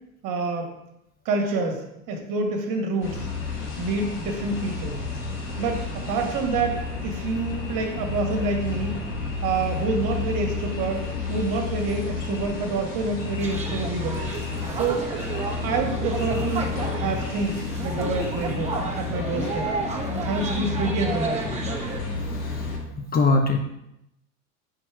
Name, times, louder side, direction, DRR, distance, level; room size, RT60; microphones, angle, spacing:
voice 1, 0.2-0.7 1.2-3.3 3.8-5.0 5.6-8.9 9.4-11.0 11.3-14.2 14.8-15.1 15.6-19.7 20.2-21.6, right 3 dB, 50° right, 2 dB, 1.6 m, -27 dB
sound 1, 3.0-22.8, left 4 dB, 55° left, 1.8 m, -31 dB
sound 2, 13.4-22.0, right 4 dB, 15° right, 1.3 m, -32 dB
voice 2, 22.3-23.6, left 3 dB, 20° left, 3 dB, 0.6 m, -25 dB
4.6 x 4.5 x 4.5 m, 0.85 s
hypercardioid pair, 85°, 42 cm